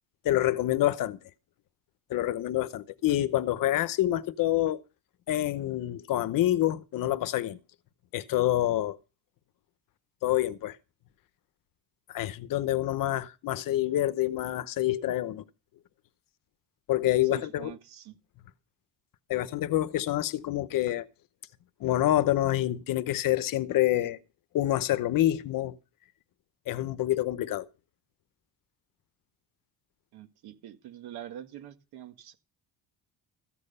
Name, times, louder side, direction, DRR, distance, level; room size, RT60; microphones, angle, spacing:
voice 1, 0.2-1.2 2.1-4.8 5.3-7.6 8.1-9.0 10.2-10.8 12.1-15.4 16.9-17.7 19.3-21.1 21.8-24.2 24.5-25.8 26.7-27.7, left 14 dB, 55° left, 0.9 m, -27 dB
voice 2, 17.2-18.2 30.1-32.4, right 11 dB, 75° right, 1.9 m, -45 dB
14.5 x 8.8 x 5.5 m
cardioid pair, 175°, 39 cm